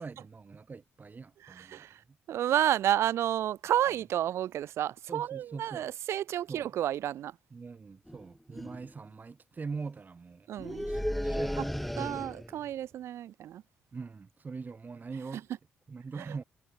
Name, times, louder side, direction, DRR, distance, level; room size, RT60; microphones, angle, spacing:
voice 1, 0.0-1.9 5.1-5.9 6.5-6.7 7.5-11.6 13.9-15.4 15.9-16.4, right 4 dB, 40° right, 2.5 m, -42 dB
voice 2, 1.4-2.0 2.3-7.4 10.5-10.9 12.0-13.6, right 11 dB, 70° right, 0.8 m, -31 dB
sound 1, 8.1-8.2 8.5-8.9 10.6-12.6, equal, ahead, 0.3 m, -34 dB
supercardioid pair, 55°, 5 cm